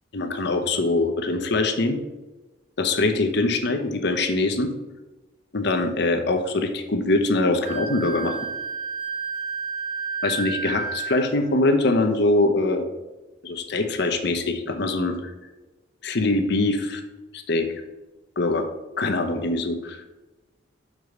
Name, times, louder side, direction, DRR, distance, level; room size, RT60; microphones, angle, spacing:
voice 1, 0.1-2.0 2.8-4.7 5.5-8.4 10.2-12.8 13.4-15.2 16.0-17.0 17.3-17.7 18.4-18.7 19.0-20.0, left 2 dB, 60° left, 6 dB, 0.9 m, -23 dB
Wind instrument woodwind instrument, 7.6-11.3, right 5 dB, 85° right, 2.0 m, -31 dB
6.3 x 4.8 x 5.3 m, 1.1 s
head